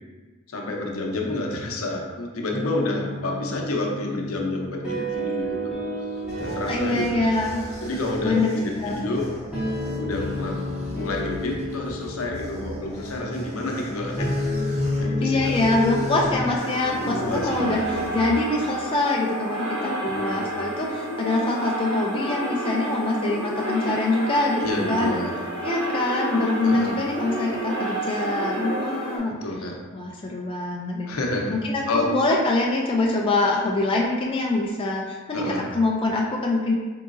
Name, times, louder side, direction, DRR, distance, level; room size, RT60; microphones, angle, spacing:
voice 1, 0.5-7.4 7.8-9.3 10.0-10.6 10.9-14.7 15.0-15.6 17.0-17.8 20.0-20.5 24.6-25.3 26.6-26.9 29.3-29.8 31.1-31.6 31.9-32.1 35.3-35.6, left 2 dB, 75° left, 0 dB, 0.7 m, -29 dB
sound 1, 2.5-16.3, left 1 dB, 5° right, 1.1 m, -31 dB
sound 2, 5.8-18.7, equal, 30° right, 1.0 m, -38 dB
voice 2, 6.5-7.6 8.2-8.6 8.8-9.0 15.2-25.2 25.6-29.4 29.9-31.1 31.5-36.7, left 2 dB, 25° left, -2 dB, 0.3 m, -24 dB
sound 3, 16.5-29.2, right 1 dB, 60° right, 1.3 m, -29 dB
3.8 x 3.7 x 2.5 m, 1.3 s
head